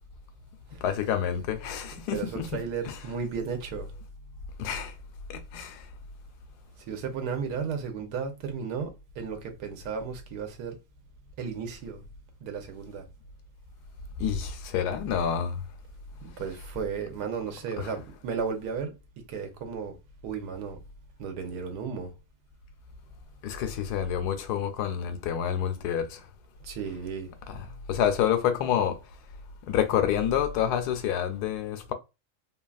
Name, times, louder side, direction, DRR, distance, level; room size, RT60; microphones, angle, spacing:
voice 1, 0.8-3.0 4.6-4.9 5.5-5.8 14.2-15.6 17.8-17.9 23.4-26.2 27.5-29.0 29.7-31.9, left 9 dB, 90° left, 1.1 m, -28 dB
voice 2, 2.1-3.9 6.9-10.8 11.4-12.0 12.4-13.0 16.2-20.8 21.2-22.1 26.6-27.3, right 6 dB, 90° right, 1.3 m, -34 dB
3.1 x 2.3 x 2.3 m
omnidirectional pair, 1.7 m